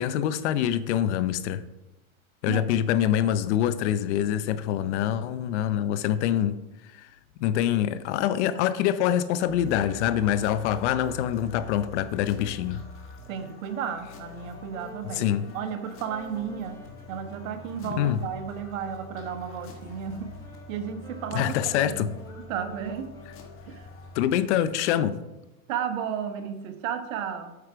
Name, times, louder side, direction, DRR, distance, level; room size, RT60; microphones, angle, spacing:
voice 1, 0.0-1.6 2.4-6.6 7.0-7.1 7.4-12.8 15.1-15.4 18.0-18.2 21.3-22.1 24.1-25.2, left 10 dB, 55° left, 14 dB, 0.7 m, -25 dB
sound 1, 9.5-24.3, left 2 dB, 30° left, 1.3 m, -45 dB
voice 2, 13.3-15.3 15.5-20.4 20.7-22.1 22.5-23.1 23.7-23.9 25.7-27.6, right 8 dB, 65° right, 8 dB, 1.2 m, -33 dB
Wind instrument woodwind instrument, 14.1-23.6, left 2 dB, 10° left, 1.4 m, -48 dB
8.2 x 4.7 x 4.9 m, 0.98 s
hypercardioid pair, 125°, 42 cm